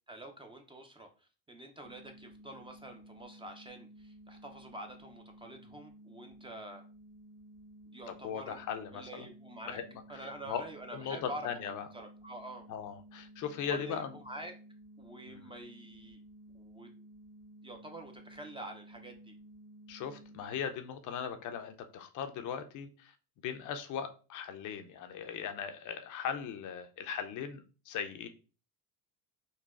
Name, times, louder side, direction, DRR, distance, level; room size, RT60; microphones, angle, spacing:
voice 1, 0.1-1.1 1.5-6.8 7.9-8.6 8.9-9.8 10.1-11.5 11.9-12.6 13.6-14.5 15.0-16.2 16.5-16.9 17.6-19.3, right 1 dB, 15° right, 0.5 m, -47 dB
sound 1, 1.8-20.5, right 1 dB, 45° right, 1.5 m, -55 dB
voice 2, 8.1-9.3 9.7-9.9 10.5-10.6 10.9-11.9 12.7-14.1 15.3-15.5 19.9-23.1 23.4-28.3, left 7 dB, 55° left, 0.5 m, -38 dB
3.9 x 2.1 x 2.3 m
supercardioid pair, 85°, 38 cm